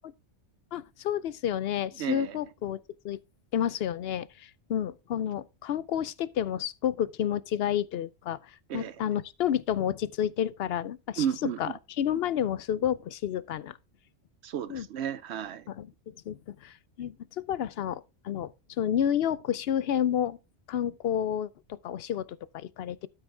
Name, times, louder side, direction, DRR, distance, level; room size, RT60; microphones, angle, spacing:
voice 1, 0.7-2.8 3.0-3.2 3.5-8.4 8.7-11.2 11.6-13.8 14.7-14.9 15.7-17.1 17.5-18.5 18.8-20.4 20.7-22.3 22.5-23.1, left 10 dB, 65° left, 0.8 m, -30 dB
voice 2, 2.0-2.4 8.7-9.0 11.2-11.7 14.4-15.7, right 9 dB, 75° right, 0.9 m, -33 dB
12.5 x 6.2 x 3.4 m
omnidirectional pair, 1.1 m